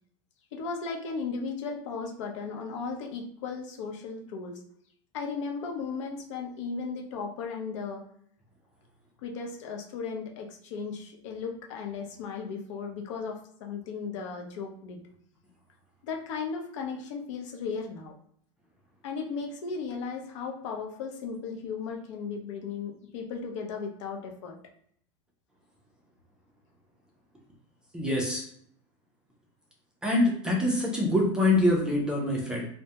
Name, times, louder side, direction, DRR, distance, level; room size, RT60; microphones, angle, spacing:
voice 1, 0.5-4.6 5.1-8.0 9.2-15.0 16.0-18.1 19.0-24.6, left 5 dB, 75° left, 2 dB, 0.7 m, -36 dB
voice 2, 27.9-28.4 30.0-32.7, left 1 dB, 5° right, -2 dB, 0.4 m, -25 dB
2.2 x 2.0 x 2.8 m, 0.65 s
supercardioid pair, 155°, 16 cm